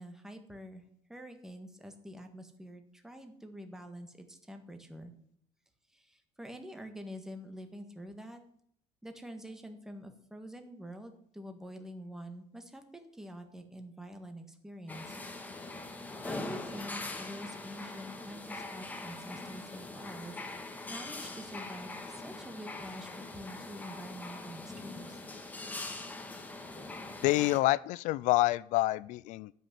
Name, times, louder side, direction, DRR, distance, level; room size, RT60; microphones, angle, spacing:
voice 1, 0.0-5.1 5.9-8.4 9.0-15.2 16.2-20.4 20.9-25.2, equal, 5° right, 6 dB, 1.6 m, -46 dB
sound 1, 14.9-27.6, left 2 dB, 10° left, 1.6 m, -42 dB
voice 2, 27.2-29.5, left 18 dB, 70° left, 20 dB, 0.5 m, -27 dB
11.5 x 6.3 x 9.2 m, 0.66 s
cardioid pair, 130°, 13 cm